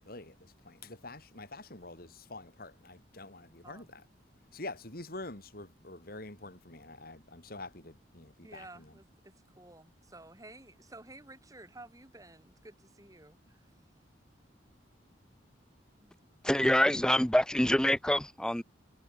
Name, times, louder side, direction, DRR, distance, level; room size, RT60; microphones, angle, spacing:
voice 1, 0.0-4.0 4.5-8.9, left 2 dB, 55° left, 4.0 m, -46 dB
voice 2, 8.4-13.7 16.0-16.2, right 2 dB, 20° right, 3.9 m, -53 dB
voice 3, 16.4-18.6, left 1 dB, 5° left, 0.6 m, -26 dB
head